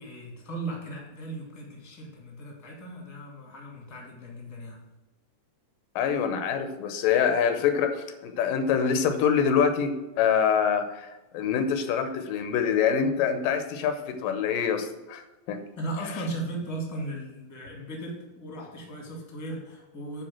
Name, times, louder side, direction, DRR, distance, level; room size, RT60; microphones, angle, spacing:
voice 1, 0.0-4.8 15.8-20.2, right 2 dB, 10° left, -1 dB, 1.2 m, -37 dB
voice 2, 6.0-11.1 11.3-15.2 15.5-15.6, left 7 dB, 85° left, 8 dB, 2.5 m, -25 dB
9.8 x 3.7 x 7.2 m, 1.0 s
omnidirectional pair, 3.8 m